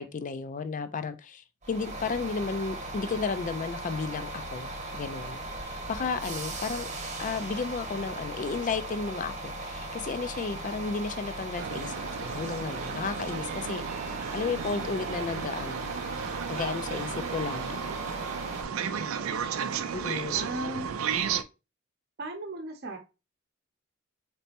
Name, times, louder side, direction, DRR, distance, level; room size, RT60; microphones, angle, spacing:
voice 1, 0.0-6.9 7.2-11.9 12.2-13.8 14.3-15.9 16.5-17.8 19.9-20.5, left 5 dB, 40° left, 0.4 m, -33 dB
sound 1, 1.6-18.6, right 2 dB, 35° right, 1.0 m, -38 dB
sound 2, 11.6-21.4, right 7 dB, 80° right, 0.4 m, -34 dB
voice 2, 18.8-19.9 20.3-20.9 22.2-23.0, right 1 dB, 50° right, 0.7 m, -38 dB
4.1 x 3.3 x 2.8 m
head